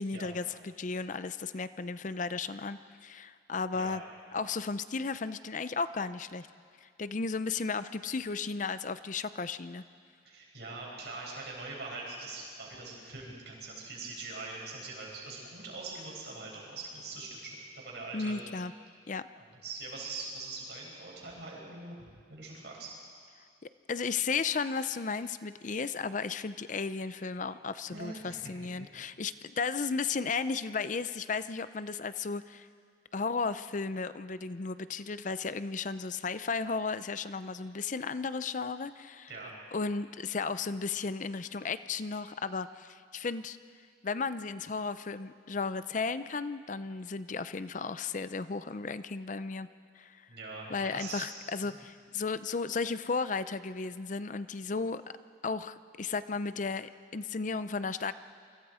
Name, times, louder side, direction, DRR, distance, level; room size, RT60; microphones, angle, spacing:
voice 1, 0.0-4.0 4.3-6.5 6.8-9.8 18.1-18.7 19.1-19.2 23.9-32.7 33.1-39.3 39.7-43.6 44.0-49.7 50.0-50.3 50.7-55.0 55.4-58.1, left 4 dB, 45° left, 13 dB, 0.6 m, -34 dB
voice 2, 10.2-18.4 19.4-22.9 27.9-28.5 39.3-39.5 50.3-51.2 51.6-51.8, right 3 dB, 60° right, -3 dB, 6.9 m, -43 dB
28.0 x 24.5 x 5.0 m, 2.1 s
head